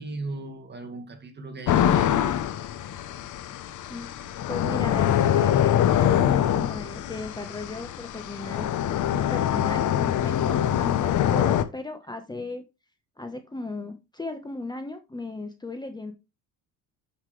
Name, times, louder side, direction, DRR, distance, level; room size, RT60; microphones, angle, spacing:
voice 1, 0.0-2.4, right 2 dB, 30° right, 2.1 m, -37 dB
sound 1, 1.7-11.6, left 10 dB, 55° left, 1.0 m, -24 dB
voice 2, 4.5-8.7 9.1-12.6 13.2-16.1, left 2 dB, 10° left, 1.2 m, -36 dB
10.5 x 6.0 x 3.4 m
cardioid pair, 100°, 36 cm